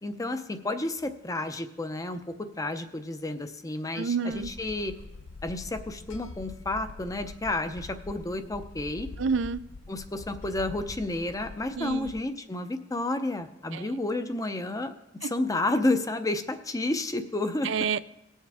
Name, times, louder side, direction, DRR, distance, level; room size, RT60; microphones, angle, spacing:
voice 1, 0.0-4.9 5.4-9.1 9.9-14.9 15.2-17.7, left 2 dB, 20° left, 9 dB, 0.6 m, -31 dB
voice 2, 3.9-4.5 9.2-9.6 11.8-12.1 13.7-13.9 15.2-15.3 17.6-18.0, right 5 dB, 80° right, 14 dB, 0.4 m, -28 dB
sound 1, 4.3-12.2, left 3 dB, 85° left, 0.6 m, -44 dB
19.0 x 7.3 x 3.5 m, 0.96 s
head